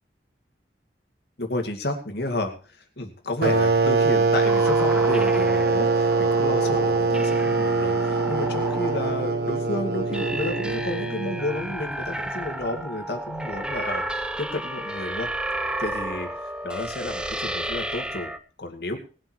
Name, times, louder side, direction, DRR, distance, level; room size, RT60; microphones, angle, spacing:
voice 1, 1.4-15.3 15.8-18.3 18.6-19.0, left 2 dB, 60° left, 4 dB, 2.4 m, -31 dB
sound 1, 3.4-11.8, right 3 dB, 60° right, 1.1 m, -23 dB
sound 2, 4.5-18.4, right 1 dB, 5° right, 0.7 m, -32 dB
19.5 x 7.7 x 4.5 m, 0.37 s
head